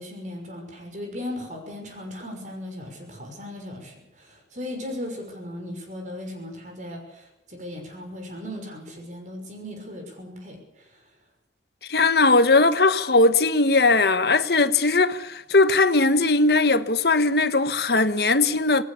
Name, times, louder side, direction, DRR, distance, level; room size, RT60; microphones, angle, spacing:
voice 1, 0.0-10.9, left 1 dB, 45° right, 6.1 m, -37 dB
voice 2, 11.9-18.8, left 3 dB, 65° left, 1.4 m, -19 dB
27.0 x 19.5 x 7.2 m
head